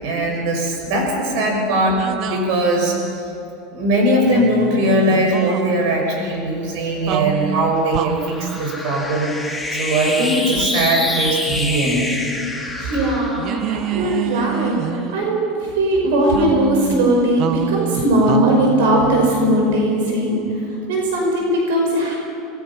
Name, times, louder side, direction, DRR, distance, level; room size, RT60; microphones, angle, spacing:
voice 1, 0.0-3.0 3.7-9.3 9.8-12.1 13.7-14.1, right 1 dB, 55° right, 1 dB, 6.3 m, -20 dB
sound 1, 2.0-3.3 4.2-5.7 7.1-8.6 10.5-12.0 12.3-12.4 13.4-15.5 16.3-20.1, right 10 dB, 40° right, 0.7 m, -28 dB
sound 2, 6.6-15.3, left 2 dB, ahead, 1.8 m, -28 dB
voice 2, 12.8-13.5 13.9-15.5 15.8-20.4 20.9-22.2, right 1 dB, 85° right, 0 dB, 5.1 m, -18 dB
28.0 x 20.5 x 5.9 m, 2.7 s
supercardioid pair, 170°, 0 cm